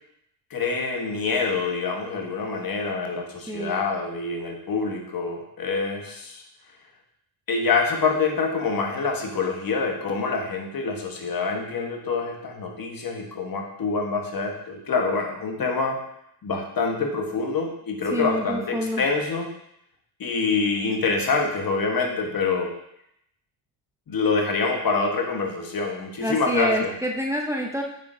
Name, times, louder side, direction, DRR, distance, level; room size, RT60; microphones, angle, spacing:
voice 1, 0.5-6.4 7.5-16.0 16.4-19.5 20.2-22.7 24.1-26.9, left 4 dB, 45° left, 2 dB, 1.4 m, -26 dB
voice 2, 3.5-3.8 18.1-19.0 26.2-27.8, equal, 5° right, 1 dB, 0.7 m, -27 dB
7.0 x 6.1 x 2.7 m, 0.77 s
supercardioid pair, 65°, 47 cm